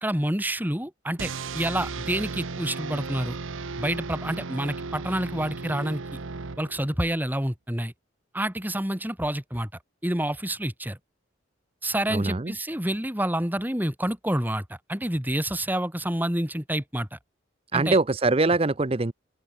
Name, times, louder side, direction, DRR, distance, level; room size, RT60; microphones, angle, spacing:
voice 1, 0.0-3.4 3.8-6.0 6.6-7.9 8.3-9.7 10.0-11.0 11.8-17.2 17.7-18.0, right 1 dB, 10° right, 3.6 m, -28 dB
sound 1, 1.2-7.1, right 4 dB, 85° right, 1.0 m, -35 dB
voice 2, 12.1-12.5 17.7-19.1, right 3 dB, 30° right, 0.7 m, -23 dB
open air
head